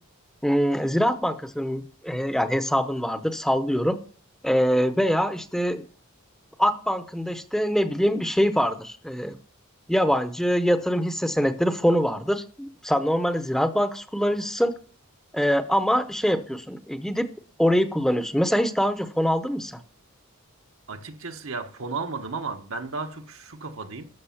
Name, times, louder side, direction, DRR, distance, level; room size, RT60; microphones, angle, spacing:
voice 1, 0.4-4.0 4.4-5.8 6.6-9.3 9.9-14.8 15.3-17.3 17.6-19.8, equal, ahead, 0.7 m, -24 dB
voice 2, 20.9-24.1, right 4 dB, 70° right, 1.2 m, -34 dB
13.5 x 6.2 x 7.1 m
head